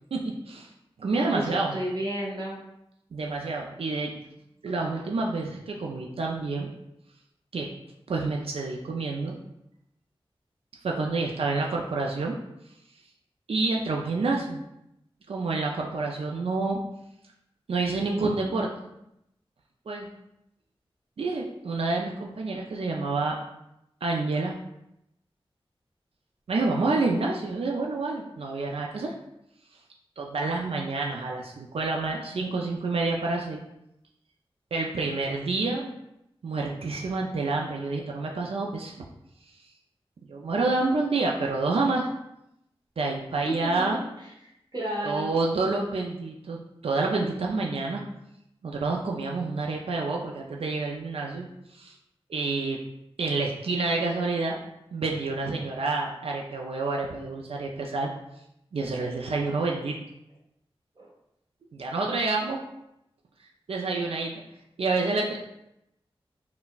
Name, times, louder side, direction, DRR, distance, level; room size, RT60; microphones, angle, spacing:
voice 1, 0.1-0.7 1.0-1.7 3.1-4.1 4.6-6.7 7.5-7.7 8.1-9.4 10.8-12.3 13.5-14.6 15.3-16.8 17.7-18.7 19.9-20.1 21.2-23.4 24.0-24.5 26.5-29.1 30.2-33.6 34.7-35.9 36.4-39.0 40.3-42.1 43.0-44.0 45.0-48.0 48.6-51.5 51.7-51.9 52.3-52.8 53.2-54.6 54.9-58.1 58.7-60.0 61.7-62.6 63.7-64.4 64.8-65.4, right 3 dB, 75° right, -1 dB, 0.4 m, -28 dB
voice 2, 1.3-2.6 43.4-43.8 44.2-45.3 61.0-61.1, right 1 dB, 45° right, -3 dB, 0.8 m, -32 dB
3.9 x 2.1 x 2.3 m, 0.82 s
wide cardioid pair, 65°, 10 cm